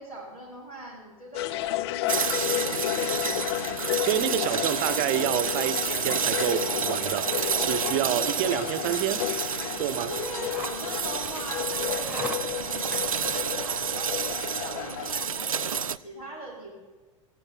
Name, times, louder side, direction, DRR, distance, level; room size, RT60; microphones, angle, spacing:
voice 1, 0.0-3.5 10.0-16.7, right 2 dB, 90° left, 4.4 m, -42 dB
sound 1, 1.3-15.3, left 16 dB, 50° left, 0.4 m, -32 dB
sound 2, 2.1-16.0, right 7 dB, 80° right, 0.4 m, -30 dB
voice 2, 4.0-7.3 7.6-9.3 9.8-10.1, right 13 dB, 45° right, 0.8 m, -28 dB
sound 3, 9.2-15.1, right 2 dB, 5° right, 1.3 m, -45 dB
17.5 x 14.0 x 4.4 m
figure-of-eight pair, 80°, 17 cm